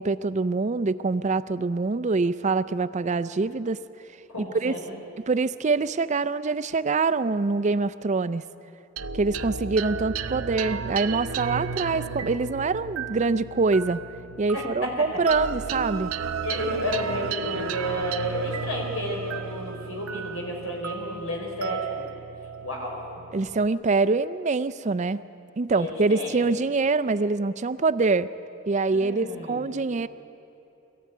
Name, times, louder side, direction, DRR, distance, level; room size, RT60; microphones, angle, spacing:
voice 1, 0.0-3.8 4.4-4.7 5.3-8.4 9.1-14.0 14.4-16.1 23.3-25.2 25.6-28.3 28.7-30.1, right 3 dB, 35° right, 14 dB, 0.4 m, -25 dB
voice 2, 4.3-5.0 14.5-15.1 16.4-22.1 22.6-23.2 25.7-26.5 28.9-29.7, equal, 90° left, 0 dB, 4.9 m, -32 dB
sound 1, 9.0-23.7, right 6 dB, 85° right, 0.7 m, -34 dB
22.0 x 14.5 x 9.4 m, 2.7 s
head